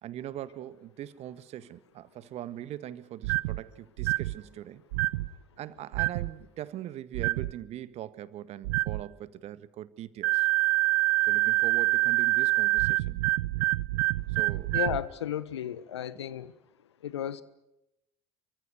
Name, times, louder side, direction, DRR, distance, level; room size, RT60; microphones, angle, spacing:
voice 1, 0.0-4.8 5.6-10.5 11.3-13.3 14.3-14.8, right 12 dB, 50° right, 15 dB, 1.6 m, -41 dB
sound 1, 3.2-3.6 4.0-4.4 4.9-5.3 5.9-6.3 7.1-7.5 8.6-9.0 10.2-15.0, right 20 dB, 65° right, 0.9 m, -26 dB
voice 2, 14.7-16.5 17.0-17.4, left 10 dB, 80° left, 17 dB, 1.3 m, -33 dB
29.0 x 24.5 x 6.6 m, 0.87 s
figure-of-eight pair, 65°, 14 cm